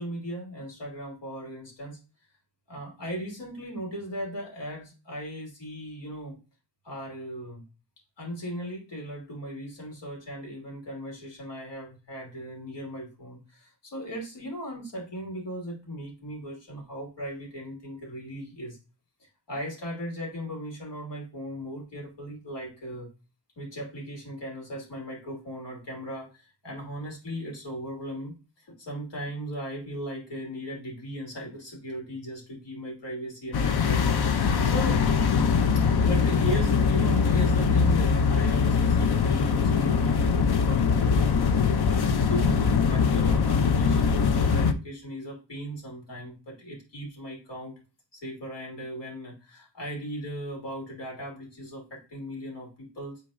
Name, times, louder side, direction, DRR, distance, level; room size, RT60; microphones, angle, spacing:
voice 1, 0.0-2.0 2.7-6.4 6.8-7.6 8.2-18.8 19.5-23.1 23.6-28.4 28.7-35.0 35.7-47.7 48.1-53.2, equal, 80° left, -1 dB, 2.9 m, -37 dB
sound 1, 33.5-44.7, left 5 dB, 65° left, 0.7 m, -22 dB
9.4 x 4.0 x 2.5 m, 0.33 s
wide cardioid pair, 160°, 42 cm